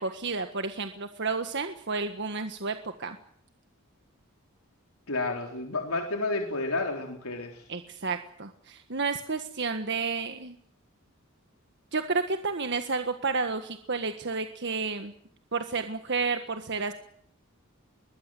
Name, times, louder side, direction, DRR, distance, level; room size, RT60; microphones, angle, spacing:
voice 1, 0.0-3.2 7.7-10.5 11.9-15.1 15.5-16.9, right 4 dB, 55° right, 7 dB, 1.6 m, -31 dB
voice 2, 5.1-7.6, left 2 dB, 85° left, 2 dB, 3.8 m, -31 dB
23.5 x 21.0 x 7.8 m, 0.64 s
head